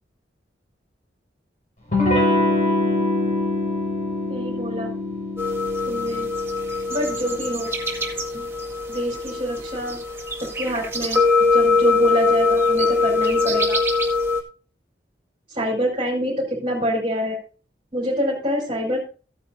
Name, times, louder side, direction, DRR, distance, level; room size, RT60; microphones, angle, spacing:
Electric guitar / Strum, 1.9-7.3, left 1 dB, 45° left, 5.4 m, -24 dB
voice 1, 4.3-4.9 5.9-6.3 6.9-7.7 8.3-8.5 8.9-10.0 10.4-11.2 11.5-13.8 15.5-17.4 17.9-19.0, equal, 30° right, -5 dB, 4.1 m, -26 dB
sound 1, 5.4-14.4, left 3 dB, 15° right, 1.9 m, -22 dB
15.0 x 9.3 x 2.7 m, 0.36 s
head